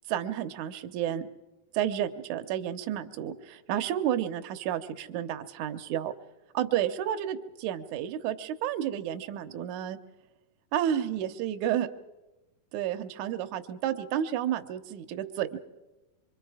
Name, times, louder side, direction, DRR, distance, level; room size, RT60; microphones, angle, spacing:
voice 1, 0.1-1.2 1.7-6.1 6.5-10.0 10.7-11.9 12.7-15.6, right 10 dB, 70° right, 7 dB, 2.1 m, -31 dB
26.5 x 23.5 x 4.9 m, 1.0 s
omnidirectional pair, 4.2 m